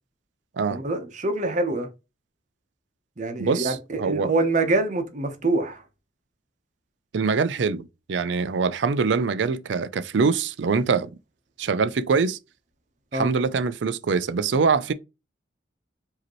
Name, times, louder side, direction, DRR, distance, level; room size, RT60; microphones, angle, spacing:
voice 1, 0.7-1.9 3.2-5.8 13.1-13.3, right 2 dB, 40° right, 0.9 m, -25 dB
voice 2, 3.4-4.3 7.1-11.1 11.6-12.4 13.1-14.9, right 5 dB, 80° right, 0.4 m, -24 dB
4.9 x 2.9 x 3.0 m
head